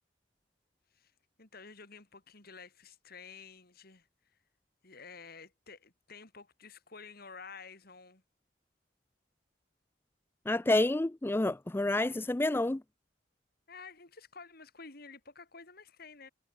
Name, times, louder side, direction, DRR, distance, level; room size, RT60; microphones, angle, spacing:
voice 1, 1.4-4.1 4.8-8.2 13.7-16.3, left 5 dB, 50° left, 2.8 m, -51 dB
voice 2, 10.5-12.8, left 2 dB, 10° left, 0.3 m, -28 dB
head